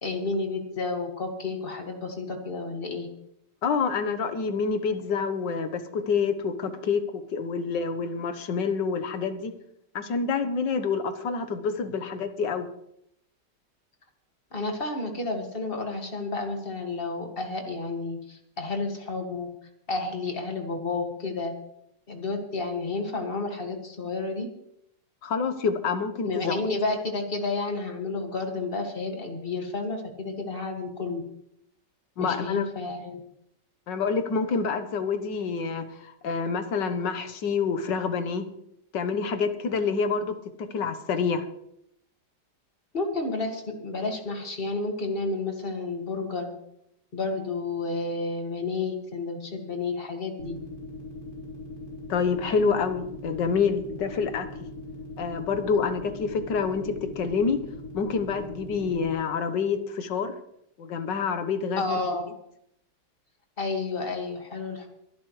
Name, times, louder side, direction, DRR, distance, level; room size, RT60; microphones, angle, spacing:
voice 1, 0.0-3.1 14.5-19.5 19.9-21.5 22.1-24.5 26.2-31.2 32.2-33.2 42.9-46.5 47.1-50.6 61.8-62.3 63.6-64.9, left 3 dB, 30° left, 3 dB, 2.2 m, -31 dB
voice 2, 3.6-9.5 10.0-12.7 25.2-26.7 32.2-32.7 33.9-38.5 38.9-40.4 40.7-41.5 52.1-54.5 55.2-57.6 57.9-60.3 60.8-62.0, left 5 dB, 75° left, 9 dB, 1.8 m, -27 dB
sound 1, 50.4-59.1, left 3 dB, 55° left, 4.4 m, -40 dB
22.5 x 11.0 x 3.2 m, 0.76 s
omnidirectional pair, 1.9 m